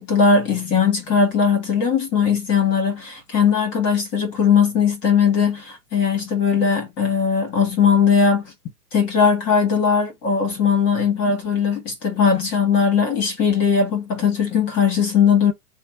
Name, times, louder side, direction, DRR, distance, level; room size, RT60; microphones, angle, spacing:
voice 1, 0.0-8.5 8.9-15.5, left 6 dB, 20° left, 1.0 m, -19 dB
3.3 x 2.1 x 4.1 m
hypercardioid pair, 150°, 47 cm